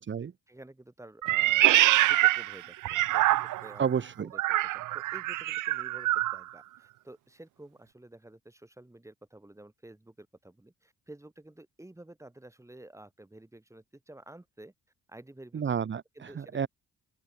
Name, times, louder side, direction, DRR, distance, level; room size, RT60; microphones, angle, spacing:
voice 1, 0.5-3.9 4.2-14.7 15.1-15.7 16.1-16.7, right 1 dB, 10° right, 5.6 m, -51 dB
Meow, 1.2-3.8 4.3-6.4, right 16 dB, 85° right, 1.1 m, -25 dB
voice 2, 3.8-4.3 15.5-16.7, right 7 dB, 40° right, 1.4 m, -30 dB
open air
cardioid pair, 90°, 30 cm